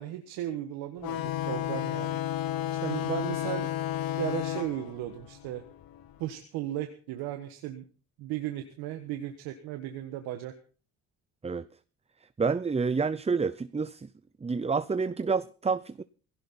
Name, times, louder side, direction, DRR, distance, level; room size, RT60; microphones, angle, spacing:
voice 1, 0.0-2.2 2.8-3.7 4.2-5.6 6.2-7.9 8.2-10.5, right 13 dB, 90° right, 1.5 m, -35 dB
sound 1, 1.0-6.2, left 13 dB, 70° left, 1.3 m, -32 dB
voice 2, 12.4-14.1 14.4-16.0, right 5 dB, 15° right, 0.6 m, -28 dB
17.5 x 16.5 x 4.3 m
supercardioid pair, 70°, 36 cm